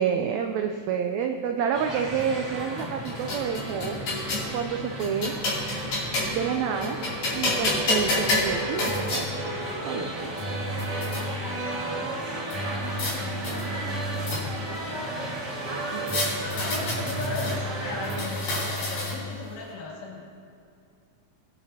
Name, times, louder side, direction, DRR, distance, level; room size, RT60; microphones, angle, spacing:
voice 1, 0.0-4.0 4.5-5.3 6.3-7.0 7.3-9.5 9.8-10.3 15.9-16.2, right 7 dB, 85° right, 5 dB, 1.6 m, -29 dB
sound 1, 1.7-18.2, right 1 dB, 35° right, 2.2 m, -34 dB
sound 2, 2.8-4.5 5.0-6.5 6.8-9.2 10.0-10.1 10.4-11.2 12.5-13.1 13.4-14.7 16.1-17.6 18.0-19.4, left 1 dB, 75° left, 4.5 m, -29 dB
voice 2, 11.4-15.4 16.4-20.4, left 3 dB, 60° left, -4 dB, 3.0 m, -38 dB
21.5 x 10.0 x 2.8 m, 2.3 s
omnidirectional pair, 3.8 m